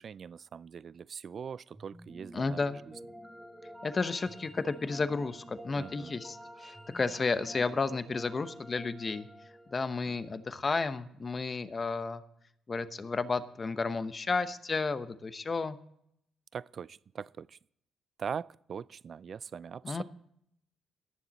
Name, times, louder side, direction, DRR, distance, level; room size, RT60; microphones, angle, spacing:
voice 1, 0.0-2.6 5.8-6.2 10.1-10.2 16.5-17.6 18.2-20.0, right 7 dB, 50° right, 0.3 m, -41 dB
sound 1, 1.7-10.9, equal, 5° right, 1.7 m, -50 dB
voice 2, 2.3-2.8 3.8-9.3 9.7-12.2 12.7-15.8 19.8-20.0, left 4 dB, 30° left, 0.9 m, -32 dB
19.0 x 7.3 x 4.1 m
cardioid pair, 90°, 0 cm